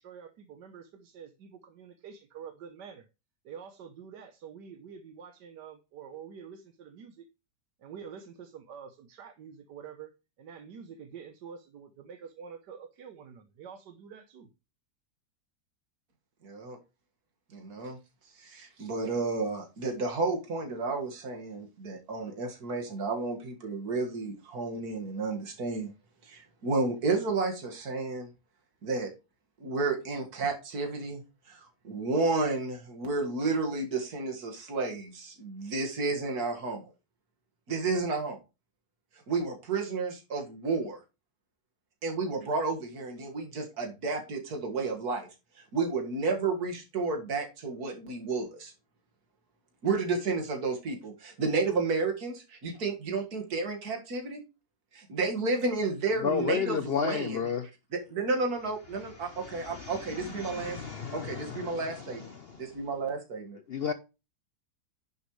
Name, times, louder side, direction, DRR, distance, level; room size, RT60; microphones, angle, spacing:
voice 1, 0.0-3.0 3.4-7.3 7.8-10.1 10.4-14.5, right 7 dB, 85° right, 1.5 m, -47 dB
voice 2, 16.4-16.8 17.5-18.0 18.4-25.9 26.2-28.3 28.8-29.1 29.6-31.2 31.5-36.9 37.7-38.4 39.3-41.0 42.0-45.3 45.7-48.7 49.8-54.4 54.9-57.5 57.9-60.8 61.1-62.3 62.6-63.6, right 3 dB, 65° right, 2.4 m, -31 dB
voice 3, 56.2-57.7 59.1-62.8 63.7-63.9, left 7 dB, 65° left, 0.6 m, -33 dB
10.5 x 6.9 x 3.2 m
omnidirectional pair, 1.8 m